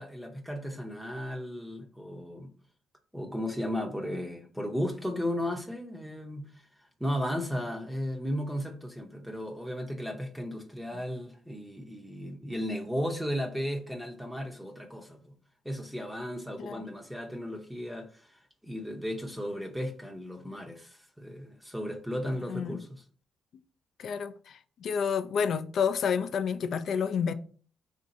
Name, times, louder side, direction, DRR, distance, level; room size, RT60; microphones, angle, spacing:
voice 1, 0.0-2.5 3.1-6.6 7.0-15.3 15.6-23.0, equal, 5° right, 0.6 m, -35 dB
voice 2, 24.0-27.3, left 6 dB, 65° left, 0.3 m, -29 dB
3.5 x 2.6 x 4.0 m
cardioid pair, 90°, 0 cm